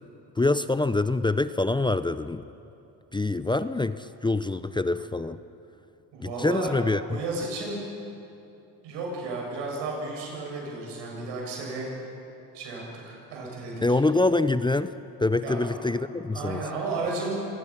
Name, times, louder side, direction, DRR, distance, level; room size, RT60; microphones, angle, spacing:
voice 1, 0.4-2.4 3.1-5.4 6.2-7.2 13.8-14.9 15.2-16.6, left 2 dB, 10° left, 12 dB, 0.5 m, -25 dB
voice 2, 6.1-6.8 7.1-7.8 8.8-11.9 12.5-13.7 15.4-15.8 16.3-17.3, right 3 dB, 85° right, -2 dB, 7.4 m, -33 dB
26.5 x 19.5 x 6.0 m, 2.8 s
supercardioid pair, 85°, 43 cm